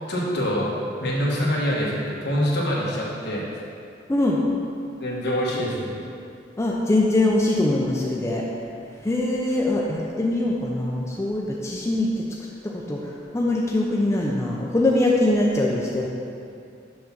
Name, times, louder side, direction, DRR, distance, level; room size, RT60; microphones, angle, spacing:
voice 1, 0.1-0.7 1.0-3.4 5.0-6.0, equal, 60° left, -5 dB, 1.3 m, -25 dB
voice 2, 4.1-4.4 6.6-8.5 9.0-12.3 12.6-16.1, left 2 dB, 15° left, -3 dB, 0.4 m, -23 dB
6.4 x 3.5 x 5.8 m, 2.5 s
head